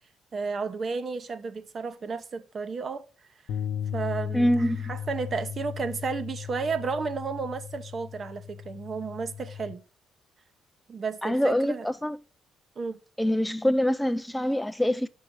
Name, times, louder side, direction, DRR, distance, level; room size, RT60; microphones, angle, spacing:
voice 1, 0.3-3.0 3.9-9.8 10.9-11.9 12.8-13.0, right 5 dB, 45° right, 0.8 m, -32 dB
sound 1, 3.5-9.7, left 8 dB, 85° left, 0.5 m, -36 dB
voice 2, 4.3-4.8 11.2-12.2 13.2-15.1, equal, 5° left, 0.3 m, -25 dB
6.2 x 5.6 x 4.5 m
cardioid pair, 90°, 0 cm